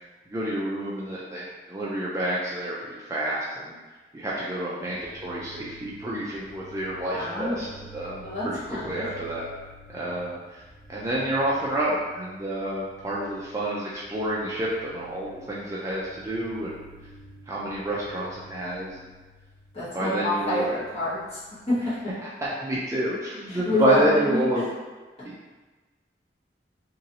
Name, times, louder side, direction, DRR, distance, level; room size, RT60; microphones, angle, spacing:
voice 1, 0.3-3.8 4.1-7.7 7.9-9.5 9.9-10.6 10.9-16.7 17.5-19.0 19.9-20.7 22.4-24.6 25.2-25.6, right 1 dB, 15° right, -6 dB, 0.3 m, -29 dB
sound 1, 4.8-19.9 20.3-22.0 22.4-22.5, right 1 dB, 70° right, 0.7 m, -50 dB
voice 2, 7.1-7.6 8.2-9.0 19.7-21.4 21.7-22.0 23.5-24.4, left 2 dB, 35° left, -11 dB, 1.3 m, -27 dB
3.0 x 2.6 x 2.8 m, 1.3 s
head